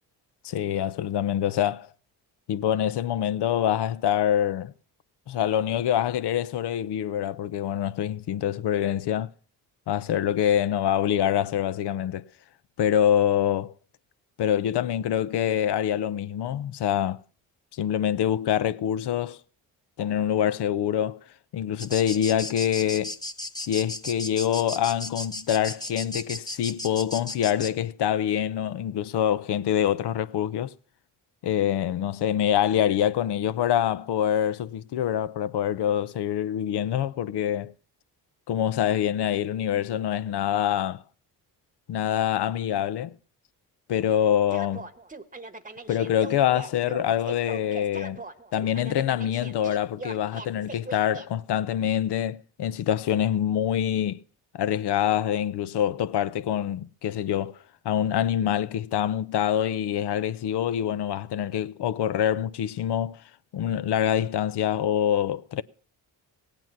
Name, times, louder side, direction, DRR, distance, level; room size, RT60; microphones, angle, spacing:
voice 1, 0.4-1.9 2.5-4.7 5.3-9.3 9.9-12.2 12.8-13.7 14.4-17.2 17.7-19.4 20.0-21.2 21.5-23.2 23.7-30.7 31.4-37.7 38.5-41.0 41.9-43.1 43.9-44.9 45.9-48.2 48.5-54.2 54.5-57.6 57.8-63.2 63.5-65.6, left 10 dB, 60° left, 0.7 m, -25 dB
sound 1, 21.8-27.7, left 1 dB, 10° left, 1.1 m, -35 dB
sound 2, 44.5-51.3, right 3 dB, 20° right, 1.1 m, -40 dB
17.5 x 8.9 x 5.9 m
supercardioid pair, 55°, 45 cm